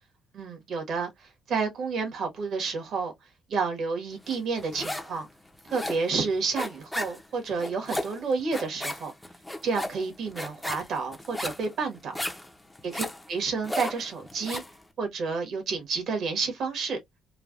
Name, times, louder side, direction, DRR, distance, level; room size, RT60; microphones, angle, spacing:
voice 1, 0.3-3.1 3.5-5.3 5.6-9.1 9.6-12.1 12.9-14.6 15.0-17.0, right 4 dB, 60° right, 1.2 m, -30 dB
sound 1, 4.3-5.2 5.5-14.8, left 1 dB, 5° left, 0.5 m, -35 dB
3.1 x 2.2 x 2.4 m
cardioid pair, 140°, 0 cm